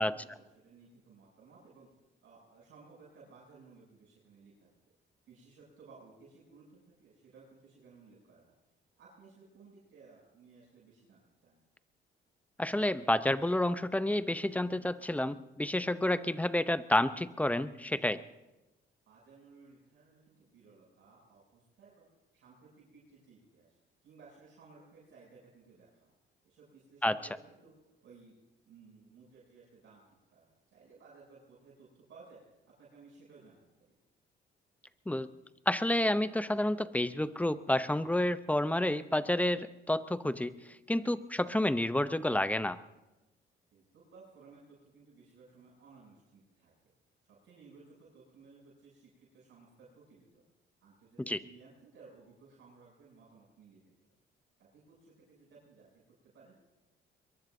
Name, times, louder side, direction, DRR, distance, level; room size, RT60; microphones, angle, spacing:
voice 1, 0.0-1.9 2.2-4.7 5.3-8.5 9.0-11.6 19.1-22.1 22.3-26.1 26.4-27.7 28.0-28.3 28.6-30.0 30.3-32.4 32.8-33.9 43.7-46.7 47.2-50.4 50.8-54.1 54.6-56.6, right 4 dB, 70° right, -7 dB, 7.9 m, -58 dB
voice 2, 12.6-18.2 27.0-27.2 35.1-35.3 35.7-40.5 40.9-42.8 51.2-51.4, left 1 dB, 5° left, 13 dB, 0.7 m, -30 dB
22.5 x 22.5 x 2.7 m, 1.0 s
cardioid pair, 90°, 20 cm